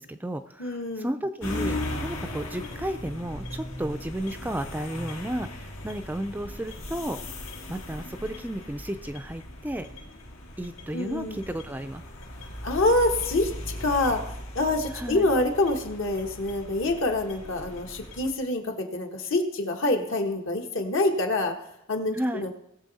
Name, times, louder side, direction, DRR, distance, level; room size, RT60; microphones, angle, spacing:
voice 1, 0.0-7.2 7.7-9.9 10.6-12.0 14.9-15.3 22.1-22.5, right 1 dB, 10° right, 8 dB, 0.4 m, -33 dB
voice 2, 0.6-1.1 10.9-11.4 12.6-13.5 13.8-14.2 14.5-21.5 21.9-22.5, left 2 dB, 70° left, 3 dB, 1.4 m, -26 dB
sound 1, 1.4-18.3, left 1 dB, 85° left, 2.0 m, -38 dB
19.5 x 7.0 x 4.1 m, 0.87 s
head